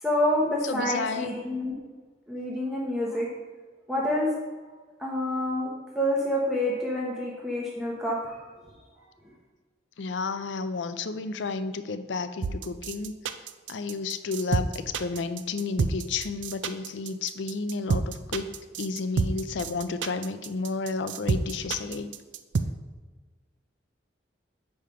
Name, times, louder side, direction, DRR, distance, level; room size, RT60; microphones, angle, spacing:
voice 1, 0.0-1.7 2.3-3.3 3.9-4.3 5.0-5.7 5.9-8.4, left 1 dB, 5° right, -4 dB, 0.9 m, -27 dB
voice 2, 0.6-1.3 10.0-13.1 13.7-18.5 18.8-22.1, left 4 dB, 75° left, 11 dB, 0.5 m, -31 dB
sound 1, 12.4-22.6, right 4 dB, 80° right, 0.4 m, -28 dB
8.7 x 3.4 x 5.6 m, 1.4 s
head